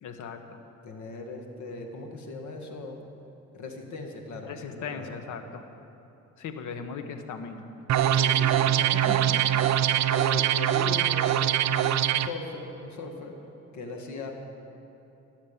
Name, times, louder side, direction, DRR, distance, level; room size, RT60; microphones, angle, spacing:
voice 1, 0.0-0.6 4.5-5.6 6.4-7.6 8.1-8.2, left 5 dB, 85° left, 7 dB, 1.2 m, -38 dB
voice 2, 0.8-3.0 3.5-5.1 8.1-9.8 10.1-13.4 13.7-14.3, left 3 dB, 70° left, 3 dB, 2.1 m, -39 dB
sound 1, 7.9-12.3, right 11 dB, 65° right, 0.6 m, -23 dB
21.0 x 7.4 x 7.2 m, 3.0 s
cardioid pair, 90°, 30 cm